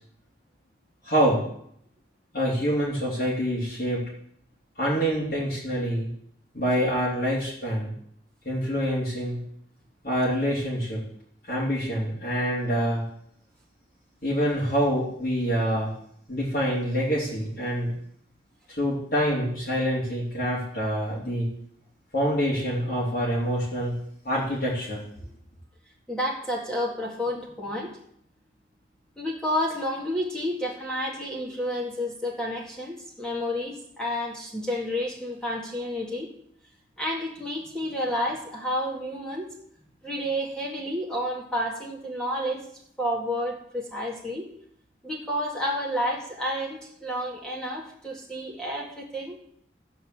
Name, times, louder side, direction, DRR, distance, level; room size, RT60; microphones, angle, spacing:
voice 1, 1.0-1.4 2.3-4.1 4.8-6.1 6.5-7.9 8.5-9.4 10.0-11.0 11.4-13.0 14.2-15.9 16.3-17.9 18.7-21.5 22.1-24.0 24.2-25.0, equal, 55° left, -7 dB, 3.5 m, -26 dB
voice 2, 26.1-28.0 29.2-36.3 37.0-39.5 40.0-42.7 43.0-44.5 45.0-49.4, equal, 5° left, -3 dB, 1.9 m, -30 dB
14.0 x 5.4 x 7.7 m, 0.69 s
head